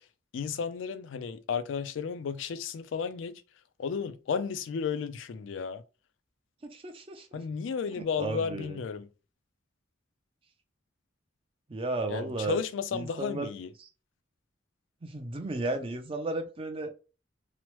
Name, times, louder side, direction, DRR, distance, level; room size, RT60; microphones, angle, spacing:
voice 1, 0.3-3.4 3.8-5.8 7.3-9.1 12.1-13.7, left 6 dB, 70° left, 0.3 m, -33 dB
voice 2, 6.6-7.4 8.0-8.8 11.7-12.6 12.9-13.5 13.8-13.9 15.0-16.9, right 2 dB, 30° right, 0.5 m, -34 dB
3.0 x 2.0 x 2.9 m
head